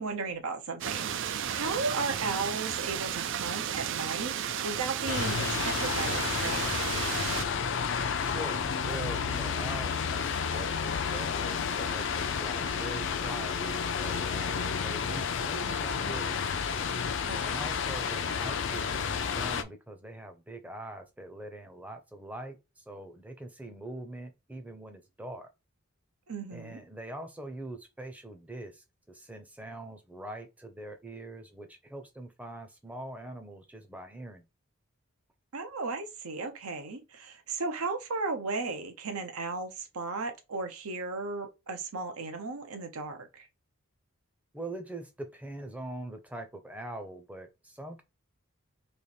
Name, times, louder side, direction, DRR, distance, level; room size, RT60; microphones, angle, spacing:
voice 1, 0.0-6.7 17.3-17.6 26.3-26.8 35.5-43.5, right 3 dB, 80° right, 0.9 m, -35 dB
sound 1, 0.8-7.5, right 9 dB, 55° right, 0.3 m, -33 dB
sound 2, 5.1-19.6, left 6 dB, 55° left, 0.4 m, -31 dB
voice 2, 8.2-16.4 17.4-25.5 26.5-34.4 44.5-48.0, right 1 dB, 5° right, 0.6 m, -43 dB
3.3 x 3.0 x 4.3 m
head